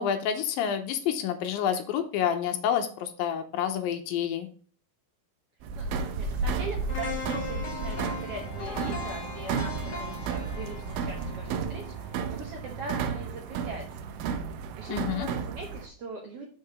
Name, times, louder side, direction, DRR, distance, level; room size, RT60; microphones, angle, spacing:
voice 1, 0.0-4.5 14.9-15.3, left 8 dB, 85° left, 7 dB, 2.5 m, -28 dB
sound 1, 5.6-15.9, right 5 dB, 80° right, 2.4 m, -33 dB
voice 2, 5.7-14.1 14.8-16.5, right 2 dB, 60° right, 0 dB, 1.6 m, -41 dB
sound 2, 6.9-12.9 13.3-13.4, left 4 dB, 65° left, 0.9 m, -39 dB
6.5 x 4.7 x 4.9 m, 0.44 s
omnidirectional pair, 4.2 m